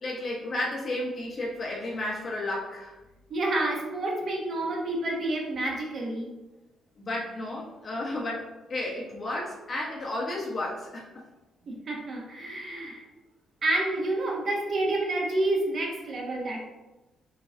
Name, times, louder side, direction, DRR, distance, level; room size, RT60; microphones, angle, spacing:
voice 1, 0.0-2.9 7.0-11.2, left 1 dB, 45° left, -3 dB, 1.3 m, -33 dB
voice 2, 3.3-6.3 11.7-13.0 13.6-16.6, right 2 dB, 50° right, -1 dB, 1.2 m, -29 dB
6.0 x 2.5 x 3.4 m, 1.1 s
cardioid pair, 90°, 0 cm